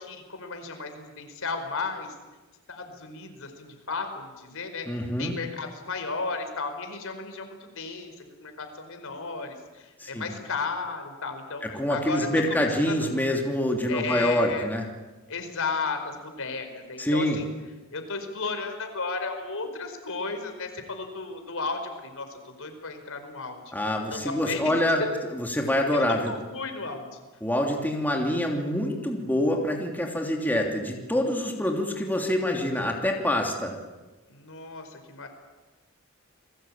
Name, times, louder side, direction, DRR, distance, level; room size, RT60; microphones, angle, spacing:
voice 1, 0.0-2.1 2.7-4.9 5.2-11.6 11.9-13.1 13.9-14.7 15.3-17.5 17.9-23.7 24.1-24.6 25.9-27.2 34.3-35.3, left 4 dB, 65° left, 6 dB, 5.0 m, -34 dB
voice 2, 4.9-5.4 10.0-10.3 11.6-14.8 17.0-17.4 23.7-25.0 25.3-26.3 27.4-33.7, left 1 dB, 10° left, 1 dB, 3.0 m, -26 dB
29.5 x 22.0 x 8.8 m, 1.2 s
head